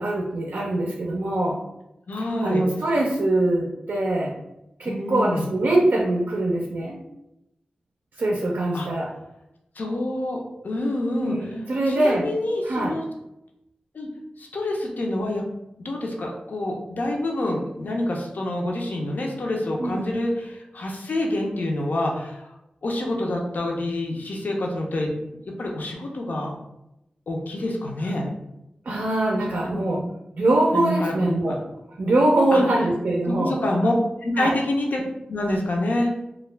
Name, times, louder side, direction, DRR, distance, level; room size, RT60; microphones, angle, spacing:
voice 1, 0.0-1.6 2.4-4.3 4.8-7.0 8.2-9.1 11.2-12.3 12.6-13.0 19.8-20.1 28.9-30.0 30.4-31.6 32.0-33.6 34.4-34.6, right 1 dB, 75° right, -1 dB, 0.4 m, -23 dB
voice 2, 2.1-2.6 4.9-5.5 8.7-8.9 9.8-11.4 11.8-13.0 13.9-14.1 14.4-15.4 15.8-22.5 22.8-25.2 25.6-26.5 27.3-28.3 29.5-30.1 30.7-31.1 31.5-31.6 32.5-32.6 33.3-33.9 34.2-35.0 35.3-36.1, left 1 dB, 70° left, 0 dB, 0.5 m, -27 dB
2.3 x 2.1 x 3.1 m, 0.88 s
cardioid pair, 45°, 3 cm